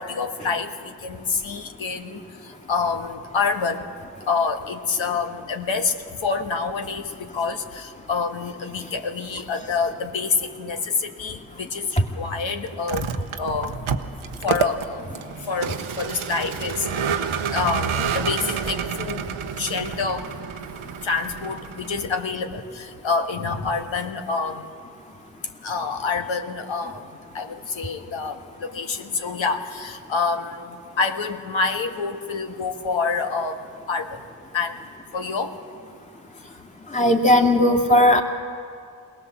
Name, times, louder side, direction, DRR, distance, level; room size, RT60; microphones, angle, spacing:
voice 1, 0.0-2.2 2.7-3.9 4.3-5.9 6.2-13.1 13.4-13.9 14.4-15.0 15.5-17.2 17.5-19.3 19.6-20.2 21.0-24.7 25.6-27.0 27.3-33.6 33.9-34.2 34.5-34.8 35.1-35.5, left 4 dB, 70° left, 5 dB, 1.7 m, -27 dB
Vehicle, 12.7-22.1, right 7 dB, 85° right, 1.0 m, -29 dB
voice 2, 36.9-38.2, left 1 dB, 15° left, 2 dB, 2.5 m, -16 dB
22.0 x 17.5 x 7.4 m, 2.3 s
supercardioid pair, 40°, 48 cm